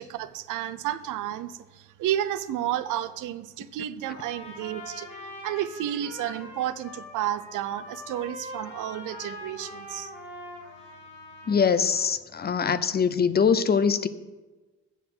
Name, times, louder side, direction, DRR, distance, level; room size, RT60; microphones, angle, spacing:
voice 1, 0.0-5.1 5.4-10.1, right 12 dB, 85° right, 13 dB, 0.6 m, -31 dB
Trumpet, 4.0-12.1, left 1 dB, 75° left, 2.7 m, -43 dB
voice 2, 11.5-14.1, left 6 dB, 30° left, 14 dB, 0.5 m, -23 dB
8.0 x 6.4 x 7.6 m, 1.2 s
cardioid pair, 90°, 30 cm